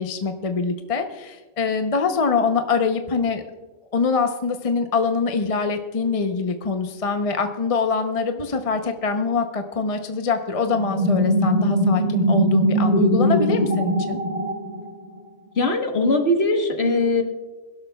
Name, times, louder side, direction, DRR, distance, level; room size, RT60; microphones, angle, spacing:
voice 1, 0.0-3.4 3.9-14.2, left 4 dB, 35° left, 6 dB, 0.7 m, -24 dB
sound 1, 10.7-15.2, equal, 50° right, 1.8 m, -20 dB
voice 2, 15.6-17.2, left 2 dB, 55° left, 4 dB, 1.5 m, -20 dB
23.0 x 12.0 x 2.3 m, 1.2 s
omnidirectional pair, 1.3 m